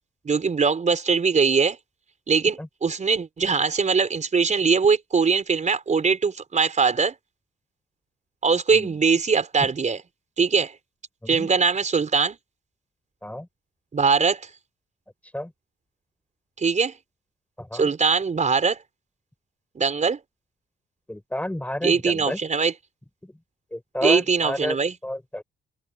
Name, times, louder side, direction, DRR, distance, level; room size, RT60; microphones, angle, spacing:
voice 1, 0.3-1.8 2.3-7.1 8.4-10.0 10.4-10.7 11.3-12.4 13.9-14.5 16.6-16.9 17.7-18.8 19.8-20.2 21.8-22.7 24.0-25.0, right 5 dB, 35° right, 5.3 m, -21 dB
voice 2, 21.1-22.4 23.7-24.8 25.0-25.4, left 1 dB, 5° left, 4.4 m, -30 dB
cardioid pair, 90°, 20 cm